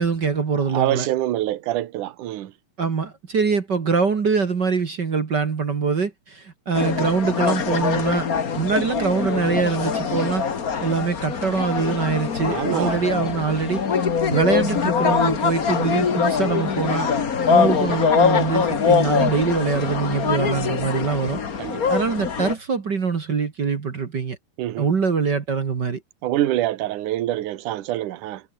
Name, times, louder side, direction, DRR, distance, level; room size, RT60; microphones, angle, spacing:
voice 1, 0.0-1.1 2.8-8.3 8.5-10.5 10.8-13.8 14.3-17.1 17.5-21.4 21.9-24.4 24.8-26.0, right 5 dB, 40° right, 1.7 m, -23 dB
voice 2, 0.7-2.5 12.5-13.0 21.6-22.0 24.6-24.9 26.2-28.4, right 14 dB, 65° right, 2.6 m, -25 dB
sound 1, 6.7-22.5, left 6 dB, 50° left, 1.0 m, -23 dB
omnidirectional pair, 4.3 m